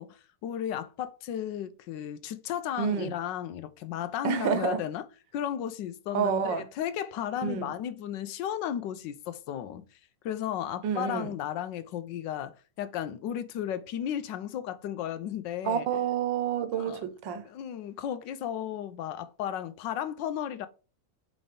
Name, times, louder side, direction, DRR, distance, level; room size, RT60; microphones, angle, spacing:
voice 1, 0.0-5.0 5.3-9.8 10.2-15.9 16.7-17.0 17.4-20.7, left 10 dB, 80° left, 1.3 m, -34 dB
voice 2, 2.8-3.1 4.2-4.8 6.1-6.7 7.4-7.7 10.8-11.3 15.6-17.4, right 7 dB, 75° right, 1.5 m, -29 dB
4.8 x 4.0 x 5.2 m
omnidirectional pair, 2.0 m